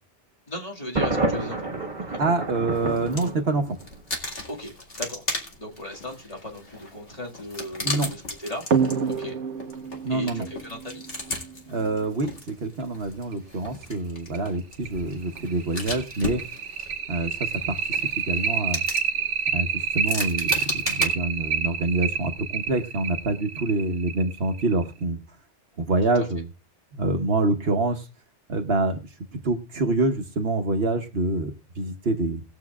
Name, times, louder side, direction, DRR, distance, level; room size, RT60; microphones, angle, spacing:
voice 1, 0.5-2.2 4.5-5.2 5.6-8.6 9.0-9.3 10.1-11.0 26.1-26.2, left 1 dB, 30° left, -1 dB, 2.2 m, -37 dB
Thunder, 1.0-3.9, right 2 dB, 40° right, 1.5 m, -29 dB
voice 2, 2.2-3.8 7.8-8.1 10.0-10.5 11.7-16.4 17.1-18.8 19.5-25.2 25.8-26.4 26.9-28.1 28.5-29.0 29.4-32.4, right 2 dB, 60° right, 6 dB, 1.2 m, -26 dB
sound 1, 2.7-3.4 3.7-21.1, left 2 dB, 55° left, 2.4 m, -36 dB
sound 2, 8.7-11.9 13.3-13.4 13.8-13.9 14.3-14.4 14.9-24.9, right 6 dB, 80° right, 1.2 m, -28 dB
20.5 x 7.4 x 2.4 m, 0.32 s
omnidirectional pair, 1.2 m